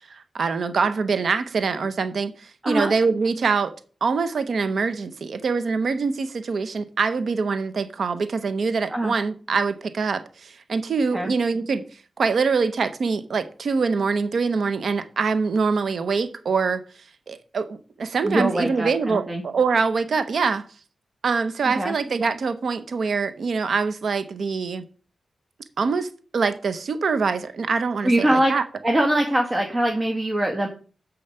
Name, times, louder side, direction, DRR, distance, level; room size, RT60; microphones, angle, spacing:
voice 1, 0.1-3.7 4.0-11.8 12.2-16.8 17.3-20.7 21.2-24.8 25.8-28.6, right 4 dB, 70° right, 0.8 m, -24 dB
voice 2, 18.2-19.4 21.7-21.9 28.0-28.5 28.8-30.7, right 1 dB, 30° right, 1.5 m, -22 dB
7.2 x 6.6 x 5.5 m
cardioid pair, 70°, 0 cm